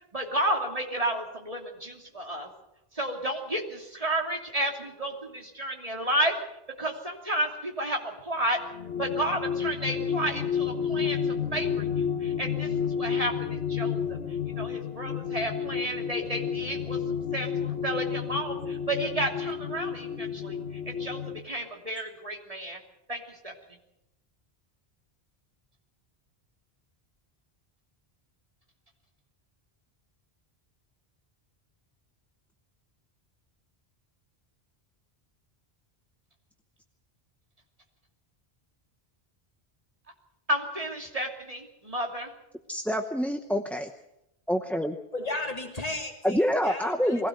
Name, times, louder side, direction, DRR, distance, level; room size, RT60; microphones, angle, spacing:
voice 1, 0.1-2.5 3.0-6.3 6.8-8.6 9.0-12.7 12.9-14.2 14.5-17.0 17.3-20.6 20.9-22.8 23.1-23.5 40.5-42.3, right 1 dB, 35° right, 2 dB, 2.9 m, -31 dB
sound 1, 8.6-21.4, left 7 dB, 75° left, 1.4 m, -31 dB
voice 2, 42.7-43.9 44.5-45.0 46.2-47.3, equal, ahead, 5 dB, 0.8 m, -26 dB
voice 3, 45.1-47.3, left 2 dB, 35° left, 1 dB, 3.0 m, -35 dB
22.0 x 16.5 x 7.9 m, 0.86 s
omnidirectional pair, 1.1 m